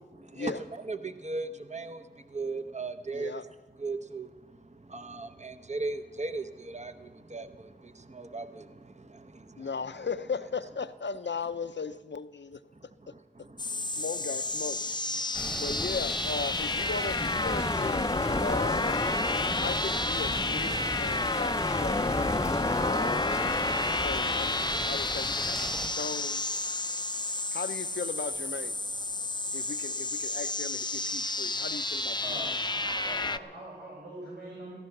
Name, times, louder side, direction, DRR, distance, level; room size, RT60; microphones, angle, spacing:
voice 1, 0.2-0.5 0.8-3.4 3.8-9.7 13.1-14.0 15.2-15.3, right 3 dB, 40° right, 0.9 m, -38 dB
voice 2, 3.1-3.4 9.6-12.6 13.1-13.2 13.9-14.8 15.5-19.1 19.6-22.2 22.9-23.4 23.9-24.5 24.8-26.4 27.5-28.8 29.5-32.5, left 5 dB, 75° left, 0.6 m, -37 dB
sound 1, 13.6-33.4, left 2 dB, 25° left, 0.5 m, -30 dB
sound 2, 15.3-25.9, equal, 5° right, 1.2 m, -38 dB
voice 3, 32.2-34.7, right 1 dB, 65° right, 5.5 m, -43 dB
14.5 x 14.5 x 5.9 m
wide cardioid pair, 40°, 19 cm